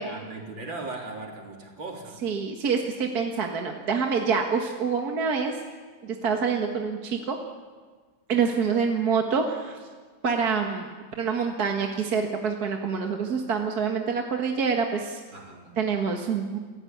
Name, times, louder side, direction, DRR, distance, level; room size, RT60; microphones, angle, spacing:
voice 1, 0.0-2.3 15.3-15.8, right 3 dB, 70° right, 1 dB, 4.3 m, -38 dB
voice 2, 2.2-5.5 6.0-7.4 8.3-9.8 10.2-15.2 15.8-16.6, right 5 dB, 50° right, 2 dB, 2.0 m, -26 dB
28.5 x 16.0 x 9.4 m, 1.5 s
omnidirectional pair, 2.2 m